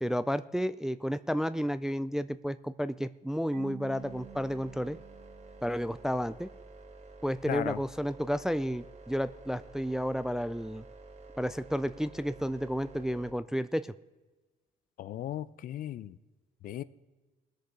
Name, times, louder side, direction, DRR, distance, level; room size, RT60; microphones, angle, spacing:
voice 1, 0.0-5.0 5.6-6.5 7.2-10.8 11.4-13.9, equal, 5° right, 0.3 m, -32 dB
Marimba xylophone / Wood, 3.5-6.3, right 13 dB, 70° right, 0.6 m, -50 dB
sound 1, 4.0-13.3, right 3 dB, 40° right, 1.7 m, -50 dB
voice 2, 7.5-7.8 15.0-16.2 16.6-16.8, left 11 dB, 55° left, 0.5 m, -36 dB
19.5 x 6.6 x 4.8 m
cardioid pair, 110°, 17 cm